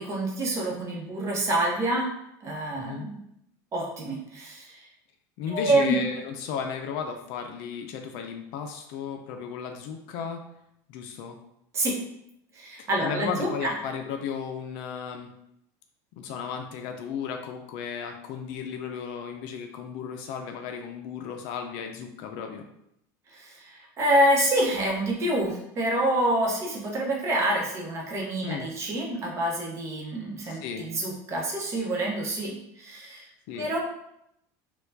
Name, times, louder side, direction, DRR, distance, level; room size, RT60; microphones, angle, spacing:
voice 1, 0.0-2.1 2.4-3.2 3.7-4.8 5.5-6.0 11.7-12.0 12.5-13.7 23.3-33.3 33.5-33.8, right 1 dB, 30° right, -1 dB, 0.8 m, -27 dB
voice 2, 2.7-3.1 5.4-10.4 10.9-11.4 12.8-15.3 16.2-22.7 28.4-28.7 30.4-30.9 33.5-33.7, left 6 dB, 65° left, 4 dB, 0.4 m, -35 dB
4.2 x 2.3 x 2.6 m, 0.78 s
supercardioid pair, 140°, 9 cm